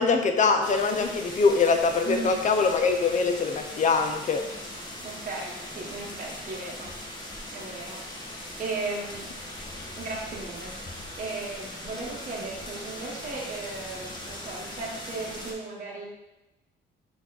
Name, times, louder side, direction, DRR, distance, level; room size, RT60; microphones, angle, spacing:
voice 1, 0.0-4.4, left 4 dB, 40° left, 6 dB, 0.6 m, -23 dB
sound 1, 0.6-15.5, left 1 dB, 20° left, 1.0 m, -40 dB
voice 2, 5.0-6.9 7.5-8.0 8.4-9.3 10.0-10.7 11.2-16.0, right 3 dB, 40° right, -3 dB, 1.0 m, -36 dB
4.2 x 2.9 x 4.0 m, 0.99 s
cardioid pair, 90°, 20 cm